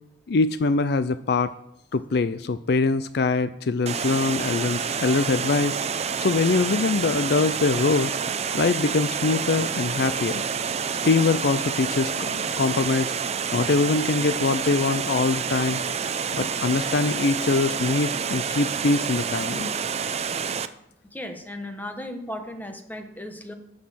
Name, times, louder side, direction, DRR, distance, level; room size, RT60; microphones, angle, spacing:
voice 1, 0.3-1.5 1.9-5.8 6.2-8.1 8.5-10.4 11.0-13.1 13.5-15.8 16.3-19.7, left 3 dB, 65° left, 13 dB, 0.5 m, -23 dB
Water, 3.9-20.7, right 6 dB, 35° right, 0.6 m, -28 dB
voice 2, 21.1-23.5, left 1 dB, 10° left, 5 dB, 1.2 m, -36 dB
11.5 x 6.4 x 7.6 m, 0.78 s
head